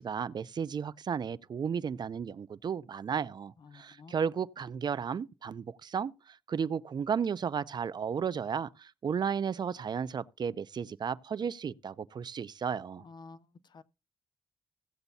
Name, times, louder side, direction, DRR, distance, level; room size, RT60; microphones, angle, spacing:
voice 1, 0.0-13.0, right 7 dB, 50° right, 0.5 m, -34 dB
voice 2, 3.6-4.1 13.0-13.8, left 4 dB, 50° left, 0.7 m, -52 dB
16.5 x 8.0 x 2.7 m
cardioid pair, 105°, 10 cm